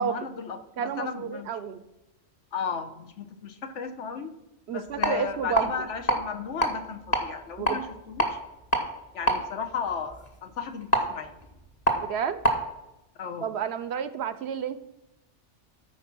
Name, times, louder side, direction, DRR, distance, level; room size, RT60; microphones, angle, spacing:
voice 1, 0.0-1.5 2.5-4.4 4.7-8.4 9.1-11.3 13.2-13.5, left 6 dB, 75° left, 7 dB, 1.2 m, -35 dB
voice 2, 0.8-1.8 4.7-5.7 7.6-7.8 12.0-12.4 13.4-14.8, right 7 dB, 65° right, 13 dB, 0.8 m, -30 dB
sound 1, 4.9-12.6, right 1 dB, 35° left, 1.4 m, -29 dB
12.5 x 4.8 x 6.0 m, 0.92 s
omnidirectional pair, 1.3 m